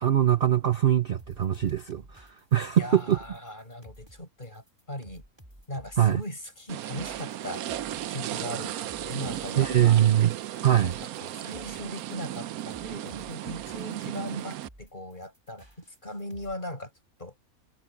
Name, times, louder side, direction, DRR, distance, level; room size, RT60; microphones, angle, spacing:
voice 1, 0.0-3.2 6.0-6.2 9.6-10.4 10.6-11.0, right 11 dB, 50° right, 0.8 m, -22 dB
sound 1, 1.2-16.5, equal, 15° right, 5.3 m, -53 dB
voice 2, 2.7-5.2 5.7-7.7 8.1-10.0 10.8-10.9 11.2-15.7 16.0-16.9 17.2-17.3, left 1 dB, 35° left, 6.6 m, -39 dB
sound 2, 6.7-14.7, right 12 dB, 80° right, 1.1 m, -35 dB
omnidirectional pair, 1.5 m